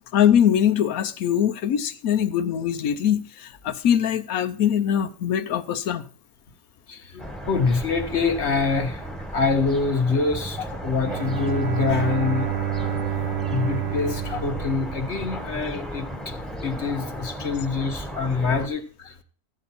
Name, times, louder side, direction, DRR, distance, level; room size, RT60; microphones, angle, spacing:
voice 1, 0.1-6.0, left 9 dB, 90° left, 1.2 m, -22 dB
voice 2, 6.9-9.0 9.3-10.6 10.8-12.5 13.5-16.1 16.6-19.1, left 4 dB, 55° left, 1.4 m, -25 dB
sound 1, 7.2-18.7, equal, ahead, 0.9 m, -35 dB
Bowed string instrument, 11.0-15.7, right 9 dB, 55° right, 0.9 m, -29 dB
13.5 x 8.2 x 4.2 m
omnidirectional pair, 1.4 m